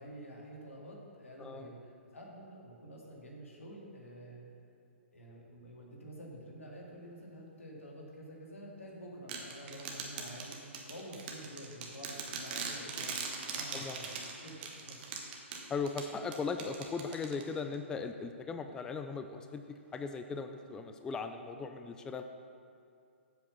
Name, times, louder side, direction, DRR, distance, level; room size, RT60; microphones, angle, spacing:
voice 1, 0.0-4.5 5.1-10.6 10.9-13.2 13.5-14.5 14.8-15.1, equal, 90° left, -2 dB, 2.0 m, -49 dB
voice 2, 1.4-1.7 13.7-14.2 15.7-22.2, left 4 dB, 10° left, 7 dB, 0.3 m, -38 dB
sound 1, 9.3-17.8, right 5 dB, 45° right, 1.2 m, -41 dB
7.9 x 5.1 x 6.8 m, 2.4 s
hypercardioid pair, 130°, 7 cm